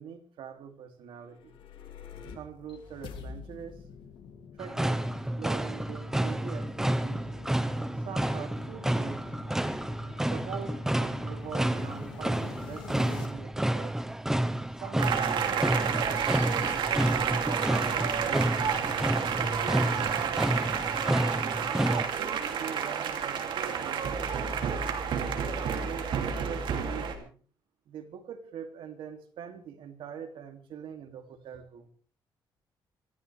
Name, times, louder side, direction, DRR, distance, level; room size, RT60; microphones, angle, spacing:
voice 1, 0.0-1.6 2.3-3.8 4.6-7.3 8.0-9.2 10.3-14.0 14.8-15.9 17.2-18.5 19.2-20.3 21.4-24.8 25.3-27.4 27.9-31.9, right 8 dB, 85° right, 5 dB, 2.7 m, -43 dB
sound 1, 1.2-13.3, left 6 dB, 90° left, 3.3 m, -46 dB
sound 2, 4.6-22.1, right 1 dB, 5° right, 1.0 m, -30 dB
sound 3, 15.0-27.1, right 7 dB, 70° right, 2.8 m, -30 dB
26.0 x 14.5 x 3.4 m, 0.40 s
cardioid pair, 135°, 9 cm